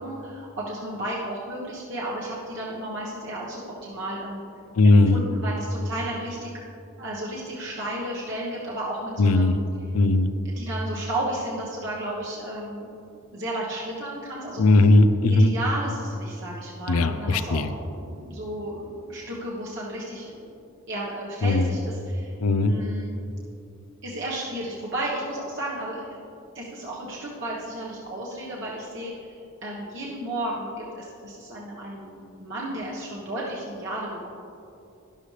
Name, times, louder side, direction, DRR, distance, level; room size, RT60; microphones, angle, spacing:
voice 1, 0.0-4.4 4.8-6.5 7.0-9.6 10.6-14.8 15.3-17.6 17.9-20.5 20.9-22.3 22.6-23.1 24.0-26.2 26.5-34.3, right 1 dB, 55° right, -5 dB, 1.4 m, -33 dB
voice 2, 4.8-5.2 9.2-9.6 9.9-10.3 14.6-15.5 16.9-17.7 21.4-21.7 22.4-22.7, left 2 dB, 85° left, 10 dB, 0.6 m, -18 dB
12.0 x 11.5 x 3.4 m, 2.7 s
head